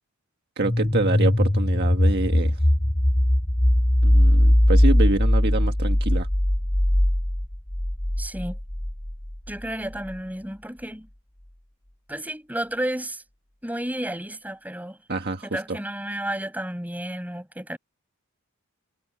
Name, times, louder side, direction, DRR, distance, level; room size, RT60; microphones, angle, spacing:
sound 1, 0.6-9.3, left 1 dB, 15° left, 1.0 m, -20 dB
voice 1, 0.6-2.6 4.0-6.3 15.1-15.8, right 2 dB, 45° right, 1.6 m, -27 dB
voice 2, 8.2-8.6 9.5-11.1 12.1-13.2 13.6-15.0 15.4-17.8, right 1 dB, 5° right, 6.3 m, -32 dB
head